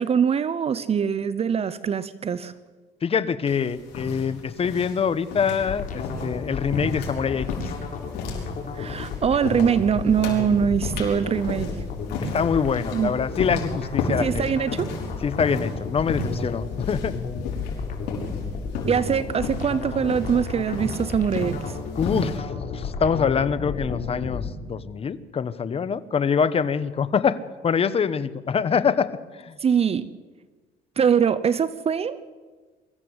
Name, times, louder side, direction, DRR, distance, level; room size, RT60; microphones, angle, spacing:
voice 1, 0.0-2.5 8.7-11.7 12.9-13.1 14.2-14.9 18.9-21.8 29.6-30.1 31.0-32.2, right 7 dB, 35° right, 15 dB, 0.8 m, -23 dB
voice 2, 3.0-7.5 12.2-14.5 15.2-17.1 22.0-27.4 27.6-29.1 29.4-29.5, left 6 dB, 35° left, 14 dB, 1.1 m, -25 dB
sound 1, 3.5-22.4, left 2 dB, 85° left, 5.5 m, -34 dB
sound 2, 5.6-24.5, left 5 dB, 55° left, 3.8 m, -33 dB
23.5 x 14.5 x 8.0 m, 1.4 s
cardioid pair, 110°, 17 cm